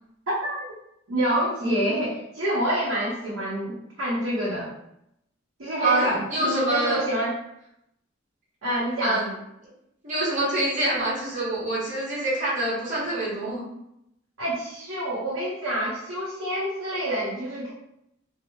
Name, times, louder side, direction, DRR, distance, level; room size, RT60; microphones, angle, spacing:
voice 1, 0.3-0.6 1.1-4.7 5.6-7.3 8.6-9.2 14.4-17.7, right 1 dB, 70° right, -7 dB, 0.7 m, -27 dB
voice 2, 5.8-7.0 9.0-9.3 10.0-13.6, right 1 dB, 40° right, -7 dB, 0.9 m, -26 dB
2.8 x 2.0 x 2.2 m, 0.81 s
head